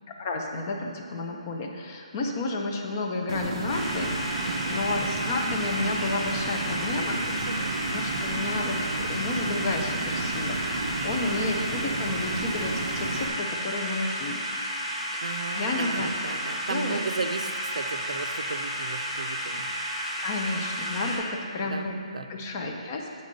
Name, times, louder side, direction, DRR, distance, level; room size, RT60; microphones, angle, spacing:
voice 1, 0.2-7.2 7.5-14.4 15.1-15.2 15.5-16.4 16.7-17.0 20.2-22.0 22.3-23.1, left 2 dB, 20° left, 1 dB, 0.5 m, -31 dB
sound 1, 3.3-13.3, right 3 dB, 40° right, 0.8 m, -33 dB
sound 2, 3.7-21.2, equal, 5° left, 1.9 m, -32 dB
voice 2, 4.4-4.9 7.4-7.8 11.4-11.8 15.2-19.7 21.5-21.9 22.1-22.3, right 4 dB, 80° right, 8 dB, 0.5 m, -35 dB
8.4 x 4.2 x 5.1 m, 2.3 s
hypercardioid pair, 175°, 4 cm